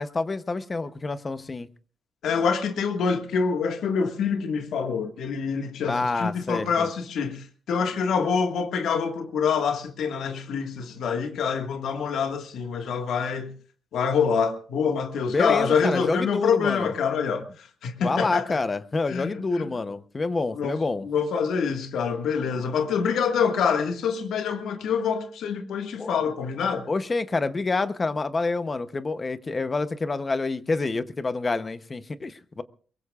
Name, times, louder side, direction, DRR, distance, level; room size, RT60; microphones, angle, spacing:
voice 1, 0.0-1.7 5.9-6.9 15.3-16.9 18.0-21.1 26.0-26.1 26.9-32.6, left 3 dB, 20° left, 0.8 m, -27 dB
voice 2, 2.2-13.5 13.9-18.6 19.1-19.7 20.5-20.8 21.0-26.9, left 6 dB, 75° left, 1.7 m, -26 dB
23.0 x 22.5 x 2.4 m
wide cardioid pair, 175°, 0 cm